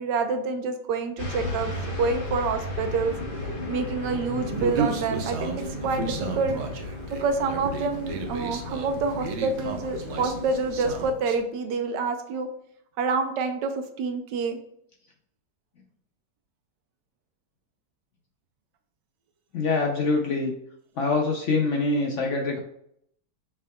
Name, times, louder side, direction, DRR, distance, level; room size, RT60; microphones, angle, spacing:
voice 1, 0.0-3.1 3.7-6.6 7.1-12.5 13.0-13.7 14.0-14.6, right 4 dB, 85° right, 7 dB, 1.3 m, -27 dB
sound 1, 1.2-11.1, left 2 dB, 35° left, 1.0 m, -35 dB
Human voice, 4.6-11.4, right 5 dB, 60° right, 0.7 m, -33 dB
voice 2, 19.5-20.5 21.0-22.6, left 3 dB, 65° left, 1 dB, 0.8 m, -24 dB
5.8 x 3.4 x 2.2 m, 0.71 s
omnidirectional pair, 1.8 m